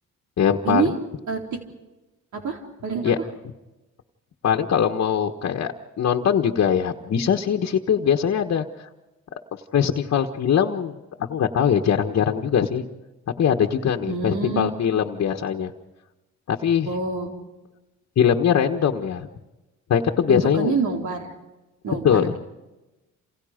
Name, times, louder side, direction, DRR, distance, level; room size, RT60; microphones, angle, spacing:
voice 1, 0.4-0.9 3.0-3.2 4.4-8.6 9.7-10.9 11.3-12.9 13.4-15.7 16.5-16.9 18.2-19.3 19.9-20.7 22.0-22.4, left 8 dB, 55° left, 3 dB, 1.5 m, -21 dB
voice 2, 1.3-1.6 2.3-3.3 14.1-14.7 16.9-17.3 20.2-21.3 21.8-22.4, right 5 dB, 70° right, 1 dB, 4.0 m, -27 dB
28.5 x 28.0 x 5.2 m, 1.1 s
cardioid pair, 90°, 30 cm